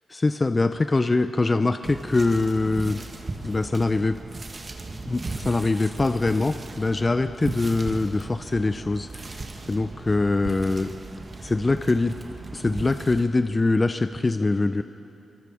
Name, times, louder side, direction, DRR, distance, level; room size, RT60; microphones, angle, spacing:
voice 1, 0.1-3.0 3.4-4.2 5.1-9.4 9.7-10.9 11.4-12.2 12.5-14.8, left 3 dB, 35° left, 10 dB, 0.6 m, -23 dB
sound 1, 1.8-13.2, right 3 dB, 45° right, 2.1 m, -37 dB
24.5 x 22.0 x 5.0 m, 3.0 s
cardioid pair, 55°, 0 cm